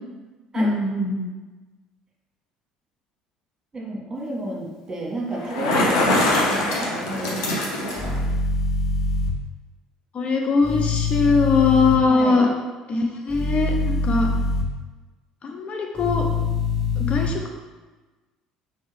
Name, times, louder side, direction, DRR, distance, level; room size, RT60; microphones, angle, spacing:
voice 1, 0.6-1.3 10.1-12.5 12.9-14.3 15.4-16.3 17.0-17.4, left 4 dB, 45° left, 2 dB, 0.5 m, -21 dB
voice 2, 3.7-7.7 12.1-12.4, right 2 dB, 25° right, -3 dB, 1.4 m, -31 dB
Bicycle, 5.3-8.2, left 2 dB, 75° left, 0.8 m, -23 dB
sound 1, 8.0-9.3 10.6-12.0 13.3-14.6 16.0-17.3, left 4 dB, 5° left, 1.1 m, -24 dB
4.4 x 3.6 x 3.1 m, 1.2 s
hypercardioid pair, 60°, 3 cm